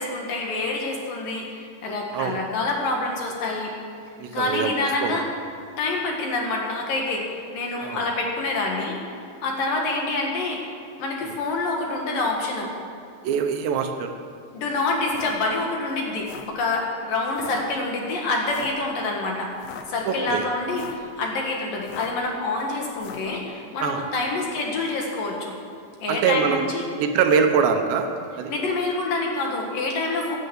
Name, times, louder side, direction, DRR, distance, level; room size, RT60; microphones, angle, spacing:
voice 1, 0.0-3.7 4.3-5.2 5.8-9.0 9.4-10.6 11.0-12.7 14.5-19.5 19.9-25.5 26.0-26.9 28.5-30.4, left 2 dB, 55° left, 0 dB, 3.1 m, -27 dB
voice 2, 4.2-4.8 5.0-5.2 7.8-8.0 13.2-14.1 20.1-20.5 23.8-24.1 26.1-26.7 27.0-28.1 28.3-28.5, right 6 dB, 75° right, 5 dB, 3.2 m, -23 dB
sound 1, 15.1-15.4 16.1-16.6 17.3-17.6 18.5-18.8 19.5-19.9 20.6-21.1 21.8-22.3 23.0-23.3, left 8 dB, 75° left, 3.2 m, -40 dB
16.0 x 11.0 x 8.1 m, 2.4 s
omnidirectional pair, 5.2 m